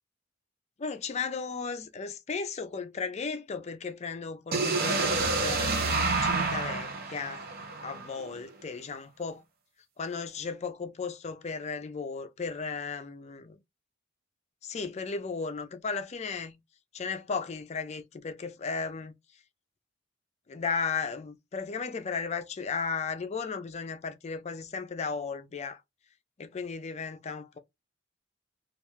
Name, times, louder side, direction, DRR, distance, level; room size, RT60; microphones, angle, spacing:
voice 1, 0.8-5.8 6.2-7.5 7.8-9.4 10.0-13.6 14.6-16.6 16.9-19.1 20.5-25.8 26.4-27.6, left 5 dB, 35° left, 0.4 m, -35 dB
sound 1, 4.5-8.4, right 3 dB, 50° right, 0.6 m, -29 dB
2.4 x 2.2 x 3.0 m
head